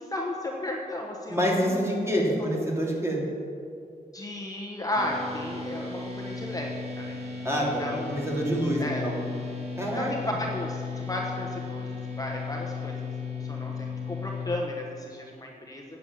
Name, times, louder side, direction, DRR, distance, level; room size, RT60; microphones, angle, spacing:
voice 1, 0.0-2.2 2.6-2.7 4.1-6.7 7.0-7.2 7.8-8.2 8.8-9.1 9.9-11.9 12.2-13.1 13.4-15.8, left 1 dB, 25° left, -1 dB, 1.1 m, -34 dB
voice 2, 1.3-3.2 7.4-7.8 8.1-9.2 9.8-10.1, equal, 15° right, -3 dB, 2.9 m, -26 dB
sound 1, 4.9-14.5, left 4 dB, 40° right, 2.2 m, -35 dB
9.6 x 7.4 x 7.3 m, 2.5 s
cardioid pair, 80°, 15 cm